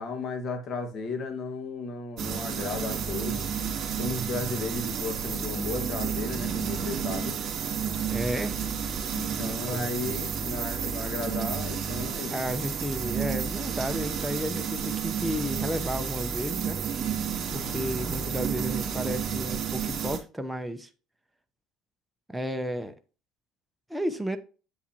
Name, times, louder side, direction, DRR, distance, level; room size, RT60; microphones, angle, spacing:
voice 1, 0.0-3.5 4.0-7.4 9.1-12.4, left 3 dB, 50° left, 1.6 m, -34 dB
sound 1, 2.2-20.2, right 7 dB, 50° right, 2.3 m, -31 dB
voice 2, 8.1-8.6 9.7-10.2 12.3-16.8 17.5-20.9 22.3-22.9 23.9-24.4, equal, 5° right, 0.8 m, -32 dB
8.1 x 5.6 x 2.8 m
supercardioid pair, 95°, 0 cm